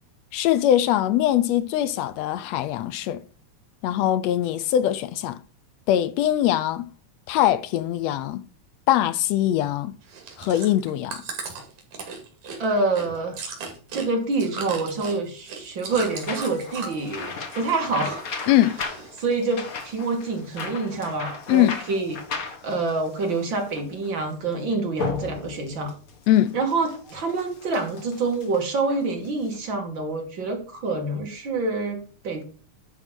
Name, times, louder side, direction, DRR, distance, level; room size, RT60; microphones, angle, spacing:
voice 1, 0.3-3.2 3.8-5.4 5.9-6.9 7.3-8.4 8.9-10.0 10.4-11.2 18.5-18.8 21.5-21.8 26.3-26.6, left 12 dB, 75° left, 1.6 m, -22 dB
Chewing mastication, 10.0-17.1 17.4-18.2 18.4-19.3 19.8-19.9, right 5 dB, 75° right, 3.6 m, -36 dB
voice 2, 12.6-13.4 13.9-18.3 19.2-25.9 26.5-32.4, right 3 dB, 45° right, 2.2 m, -27 dB
sound 1, 15.9-29.6, left 4 dB, 55° left, 1.0 m, -36 dB
11.5 x 3.8 x 6.1 m
omnidirectional pair, 3.4 m